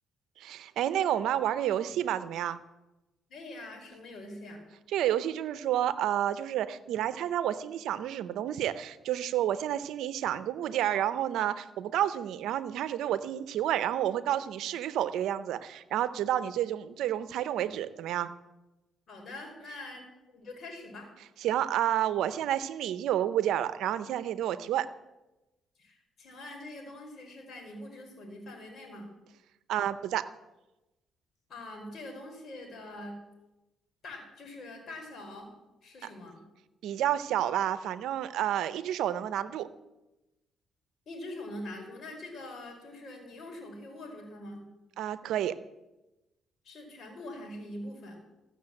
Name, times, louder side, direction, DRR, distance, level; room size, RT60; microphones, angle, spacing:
voice 1, 0.4-2.6 4.9-18.3 21.4-24.9 29.7-30.3 36.8-39.7 45.0-45.6, right 11 dB, 85° right, 14 dB, 0.7 m, -30 dB
voice 2, 3.3-4.6 19.1-21.1 25.8-29.1 31.5-33.2 34.0-35.5 35.8-36.4 41.1-44.7 46.6-48.2, left 1 dB, 60° left, 1 dB, 4.6 m, -44 dB
15.5 x 6.7 x 7.7 m, 1.0 s
cardioid pair, 90°, 0 cm